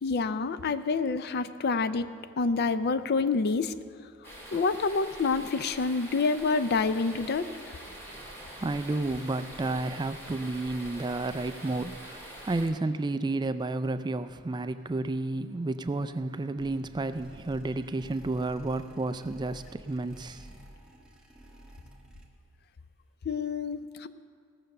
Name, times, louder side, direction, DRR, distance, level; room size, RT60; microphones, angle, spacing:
voice 1, 0.0-2.1 2.4-3.7 4.5-7.5 23.3-24.1, left 4 dB, 50° left, 0.4 m, -27 dB
sound 1, 4.2-12.7, right 1 dB, 10° left, 2.3 m, -45 dB
voice 2, 8.1-20.5, right 2 dB, 20° right, 0.3 m, -31 dB
sound 2, 16.6-22.6, right 1 dB, 5° right, 1.3 m, -51 dB
17.0 x 6.8 x 6.5 m
head